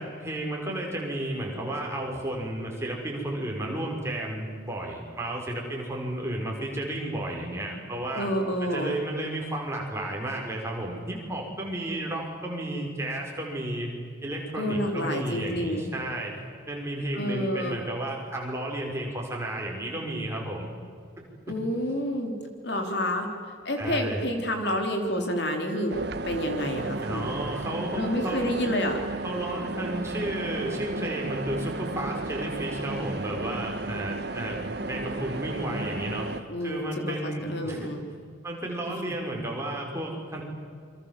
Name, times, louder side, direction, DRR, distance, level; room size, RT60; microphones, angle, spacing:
voice 1, 0.0-8.3 8.6-13.9 14.2-16.3 16.7-20.7 21.2-21.3 23.8-24.2 27.0-28.6 29.2-34.6 34.9-36.3 36.6-37.9 38.4-40.4, right 1 dB, 15° right, -1 dB, 5.5 m, -32 dB
voice 2, 8.1-9.0 14.6-15.9 17.1-17.8 21.5-22.3 22.6-26.0 26.2-27.3 28.0-29.0 36.5-38.0 38.9-39.0, equal, 55° left, 4 dB, 3.5 m, -29 dB
sound 1, 25.9-36.4, right 2 dB, 55° right, 1.2 m, -33 dB
29.0 x 25.0 x 7.5 m, 2.1 s
head